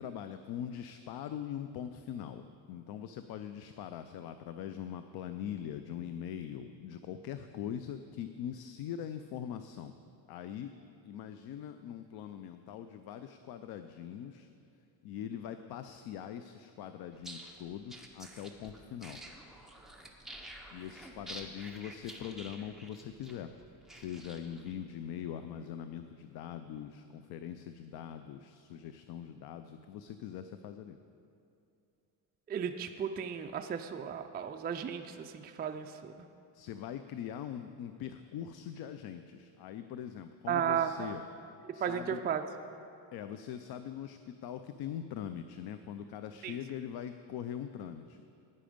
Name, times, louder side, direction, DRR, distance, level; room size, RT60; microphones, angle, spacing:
voice 1, 0.0-10.0 10.3-10.7 11.0-14.5 15.0-19.2 20.7-23.5 23.9-31.0 36.5-41.2 41.7-42.2 43.1-48.3, left 9 dB, 65° left, 10 dB, 0.6 m, -42 dB
sound 1, 17.1-24.7, right 1 dB, ahead, 1.0 m, -49 dB
voice 2, 32.5-36.1 40.5-41.1 41.7-42.4 46.4-46.6, right 8 dB, 25° right, 6 dB, 0.4 m, -34 dB
13.0 x 9.7 x 5.1 m, 2.6 s
cardioid pair, 130°, 41 cm